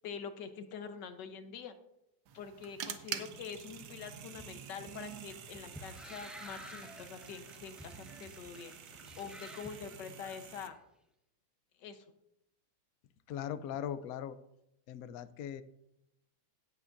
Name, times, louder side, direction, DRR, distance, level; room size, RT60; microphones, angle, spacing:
voice 1, 0.0-1.7 2.3-8.7 9.2-10.7 11.8-12.1, left 6 dB, 65° left, 8 dB, 1.5 m, -45 dB
sound 1, 2.3-10.7, right 9 dB, 65° right, 1.2 m, -47 dB
sound 2, 4.3-10.6, equal, ahead, 0.5 m, -52 dB
voice 2, 13.3-14.4 14.9-15.6, left 9 dB, 90° left, 12 dB, 0.7 m, -39 dB
17.0 x 8.5 x 2.6 m, 0.82 s
omnidirectional pair, 2.2 m